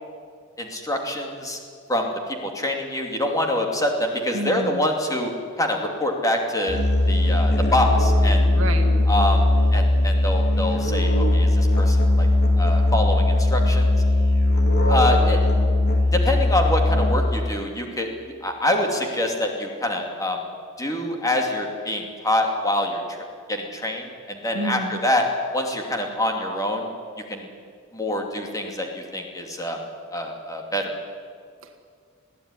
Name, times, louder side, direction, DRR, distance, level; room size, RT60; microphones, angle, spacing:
voice 1, 0.6-1.6 1.9-2.1 2.4-5.3 5.6-8.5 9.1-12.3 12.6-13.9 14.9-15.4 16.1-18.1 18.4-20.4 20.8-23.2 23.5-25.3 25.5-26.9 27.3-27.5 27.9-29.8 30.1-31.0, left 1 dB, 15° left, 2 dB, 2.7 m, -25 dB
voice 2, 4.3-4.9 8.5-8.9 24.5-25.0 31.6-31.8, right 1 dB, 65° right, 5 dB, 1.7 m, -30 dB
Musical instrument, 6.7-17.5, left 1 dB, 50° left, 3.0 m, -19 dB
21.5 x 15.5 x 10.0 m, 2.1 s
head